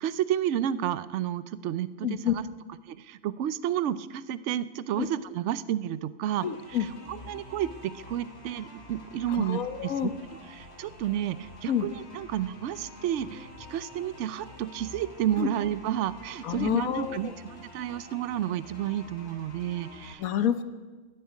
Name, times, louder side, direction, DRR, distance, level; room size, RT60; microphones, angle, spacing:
voice 1, 0.0-2.5 2.9-10.1 10.5-20.2, right 11 dB, 65° right, 16 dB, 0.9 m, -31 dB
voice 2, 2.0-2.3 5.0-5.1 6.4-6.9 9.3-10.1 11.7-11.9 15.4-15.5 16.4-17.2 20.2-20.6, left 9 dB, 90° left, 11 dB, 1.4 m, -28 dB
sound 1, 6.4-20.1, left 2 dB, 50° left, 2.9 m, -47 dB
13.5 x 10.0 x 9.5 m, 1.3 s
omnidirectional pair, 1.4 m